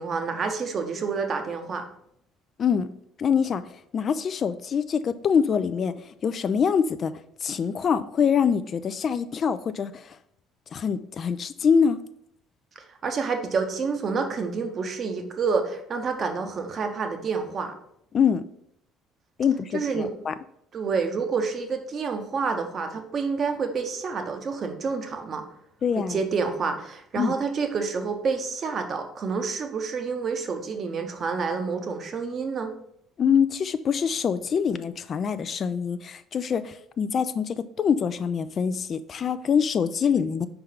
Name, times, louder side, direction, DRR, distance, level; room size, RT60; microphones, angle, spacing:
voice 1, 0.0-1.8 12.8-17.7 19.7-20.1 20.7-25.4 26.1-32.7, right 5 dB, 40° right, 6 dB, 0.8 m, -28 dB
voice 2, 3.2-3.6 3.9-7.1 7.4-10.2 10.7-12.0 18.1-18.4 19.4-20.3 25.8-26.2 27.2-27.3 33.2-40.5, left 7 dB, 40° left, 12 dB, 0.3 m, -24 dB
5.4 x 3.4 x 5.4 m, 0.72 s
figure-of-eight pair, 55°, 0 cm